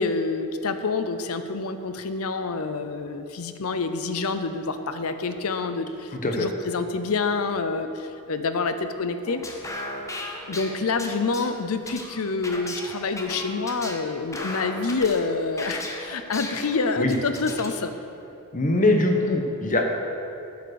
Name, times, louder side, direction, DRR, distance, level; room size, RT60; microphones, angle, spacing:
voice 1, 0.0-9.4 10.5-17.9, left 4 dB, 70° left, 9 dB, 0.6 m, -27 dB
sound 1, 9.2-17.7, left 1 dB, 15° left, 0.9 m, -37 dB
voice 2, 18.5-19.8, left 2 dB, 35° left, 3 dB, 1.1 m, -22 dB
9.3 x 6.8 x 6.5 m, 2.7 s
head